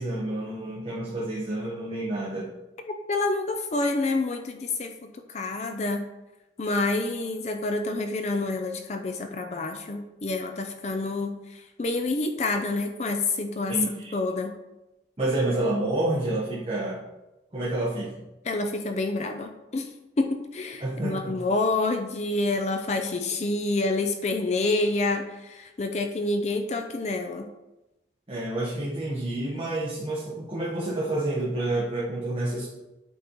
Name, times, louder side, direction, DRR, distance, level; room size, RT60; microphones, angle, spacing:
voice 1, 0.0-2.5 13.7-14.1 15.2-17.0 17.5-18.2 20.8-21.3 28.3-32.7, right 2 dB, 30° right, -6 dB, 1.0 m, -29 dB
voice 2, 3.1-6.0 6.6-13.8 14.1-14.6 18.4-27.5, left 2 dB, 35° left, 6 dB, 0.4 m, -28 dB
8.2 x 4.1 x 3.0 m, 0.98 s
head